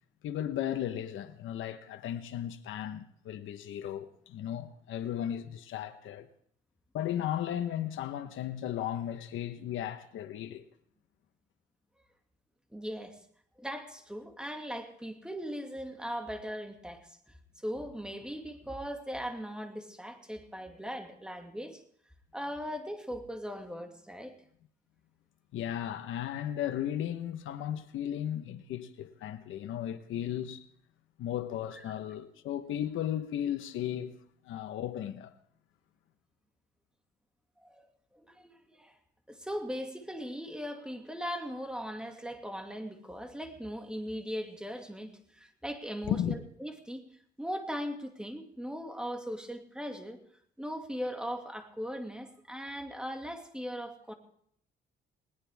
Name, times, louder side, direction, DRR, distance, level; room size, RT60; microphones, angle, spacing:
voice 1, 0.2-6.3 6.9-10.7 25.5-30.6 31.2-34.1 34.4-35.3 46.1-46.4, left 10 dB, 80° left, 1.2 m, -35 dB
voice 2, 12.7-13.2 13.6-21.8 22.3-24.4 31.8-31.9 37.6-37.9 38.1-39.0 39.3-47.0 47.4-50.2 50.6-54.1, equal, 5° right, 2.3 m, -39 dB
20.0 x 19.0 x 3.6 m
cardioid pair, 90°, 20 cm